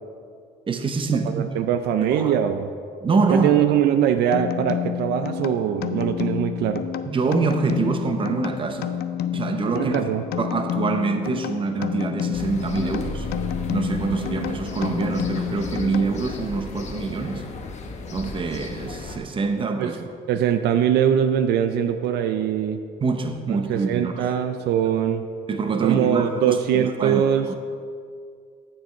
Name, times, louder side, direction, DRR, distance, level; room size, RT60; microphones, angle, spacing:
voice 1, 0.7-1.6 2.0-2.3 3.0-3.6 7.1-9.0 9.3-10.0 10.4-13.3 13.7-17.4 18.1-20.0 20.3-20.5 23.0-24.3 25.5-27.6, right 4 dB, 30° right, 7 dB, 0.8 m, -25 dB
voice 2, 1.3-2.7 3.3-6.8 9.7-10.2 19.8-19.9 20.3-22.8 23.5-25.3 25.8-27.5, right 9 dB, 75° right, 9 dB, 0.5 m, -22 dB
sound 1, 4.3-16.5, left 10 dB, 70° left, 0.5 m, -30 dB
sound 2, 12.3-19.2, left 3 dB, 45° left, 1.0 m, -34 dB
8.8 x 7.8 x 4.4 m, 2.2 s
cardioid pair, 110°, 17 cm